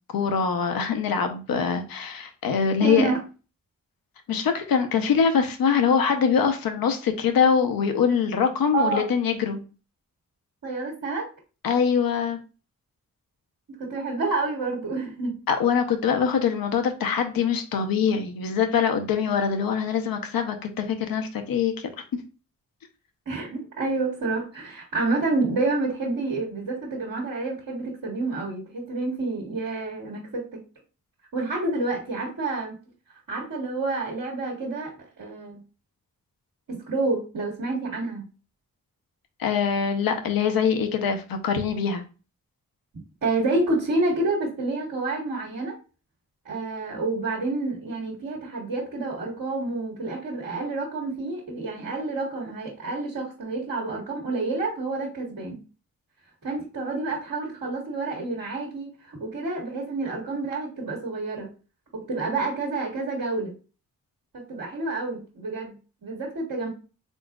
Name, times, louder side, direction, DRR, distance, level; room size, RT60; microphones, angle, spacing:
voice 1, 0.1-3.1 4.3-9.6 11.6-12.4 15.5-22.2 39.4-42.0, left 6 dB, 85° left, 0.7 m, -23 dB
voice 2, 2.8-3.2 8.7-9.0 10.6-11.3 13.8-15.3 23.2-30.6 31.3-32.8 33.3-35.6 36.7-38.2 43.2-45.7 46.4-55.6 56.4-61.5 61.9-63.5 64.3-65.7 66.0-66.7, right 3 dB, 70° right, 1.6 m, -28 dB
3.9 x 3.7 x 2.3 m
cardioid pair, 40°, 34 cm